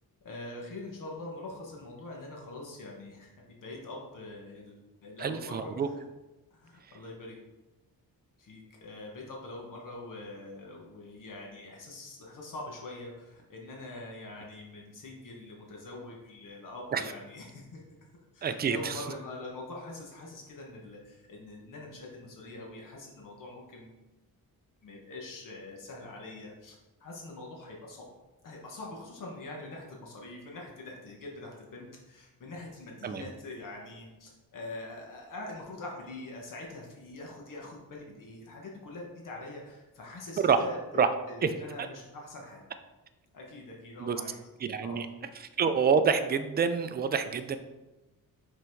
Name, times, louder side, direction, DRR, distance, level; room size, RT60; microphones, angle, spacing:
voice 1, 0.2-5.7 6.5-7.4 8.4-17.8 18.3-24.0 24.8-28.1 28.4-42.7 43.3-44.4 44.8-45.1, left 2 dB, 60° left, -1 dB, 1.2 m, -44 dB
voice 2, 5.2-5.9 6.8-6.9 16.9-17.1 18.4-19.0 33.0-33.2 40.4-40.6 41.0-41.1 41.4-41.5 41.8-41.9 44.0-44.2 44.6-45.1 45.4-47.6, right 6 dB, 30° right, 9 dB, 0.4 m, -27 dB
5.5 x 4.0 x 4.6 m, 1.1 s
wide cardioid pair, 150°, 36 cm